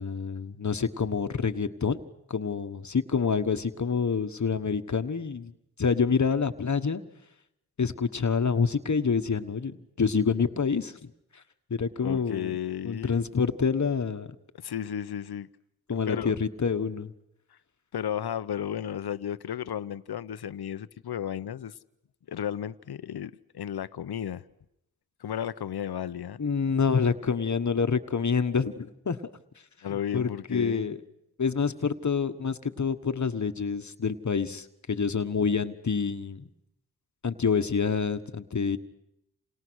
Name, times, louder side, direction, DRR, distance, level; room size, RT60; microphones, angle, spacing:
voice 1, 0.0-2.0 2.3-5.5 5.8-7.0 7.8-11.4 11.7-12.6 12.8-14.3 15.9-17.1 26.4-29.2 30.1-31.0 31.4-36.5 37.2-38.8, left 5 dB, 50° left, 1.4 m, -27 dB
voice 2, 12.0-13.2 14.5-15.5 16.1-16.4 17.5-17.6 17.9-21.8 22.3-24.4 25.2-26.4 29.8-30.9, left 9 dB, 80° left, 0.9 m, -33 dB
29.0 x 28.0 x 6.4 m
cardioid pair, 65°, 38 cm